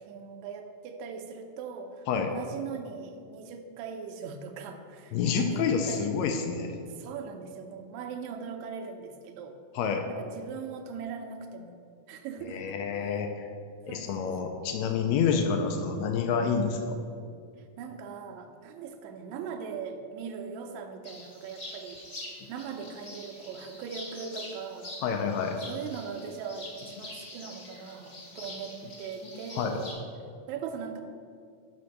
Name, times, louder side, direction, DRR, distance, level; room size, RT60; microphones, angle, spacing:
voice 1, 0.0-6.1 7.0-9.6 10.1-11.8 12.1-12.8 13.9-14.6 17.8-22.0 22.5-24.9 25.7-29.9 30.5-31.0, right 6 dB, 80° right, 5 dB, 1.8 m, -40 dB
voice 2, 5.1-6.7 9.7-10.0 12.5-13.5 13.9-17.0 25.0-25.6 29.5-29.8, left 6 dB, 85° left, 4 dB, 1.6 m, -28 dB
sound 1, 21.0-29.9, left 2 dB, 55° left, 0.6 m, -45 dB
5.7 x 5.1 x 6.4 m, 2.3 s
omnidirectional pair, 3.6 m